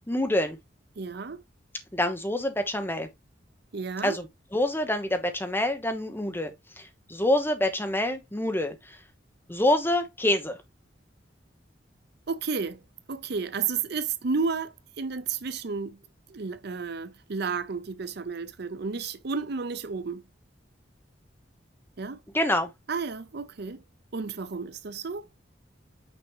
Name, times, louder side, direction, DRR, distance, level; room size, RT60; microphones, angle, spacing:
voice 1, 0.1-0.6 1.9-3.1 4.0-9.0 9.5-10.6 22.3-22.7, left 1 dB, 10° left, 1.0 m, -26 dB
voice 2, 1.0-1.4 3.7-4.2 12.3-12.8 13.1-16.0 16.3-20.2 22.0-22.2 22.9-23.8 24.1-25.5, right 5 dB, 60° right, 0.6 m, -32 dB
6.1 x 5.1 x 3.0 m
head